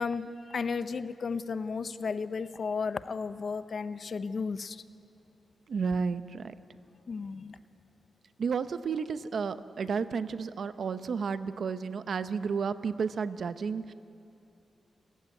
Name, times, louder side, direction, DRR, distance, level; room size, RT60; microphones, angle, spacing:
voice 1, 0.0-4.8 7.1-7.6, left 5 dB, 50° left, 12 dB, 0.8 m, -34 dB
voice 2, 5.7-6.5 8.4-13.9, right 5 dB, 60° right, 12 dB, 0.8 m, -32 dB
29.5 x 15.0 x 9.4 m, 2.6 s
wide cardioid pair, 130°, 0 cm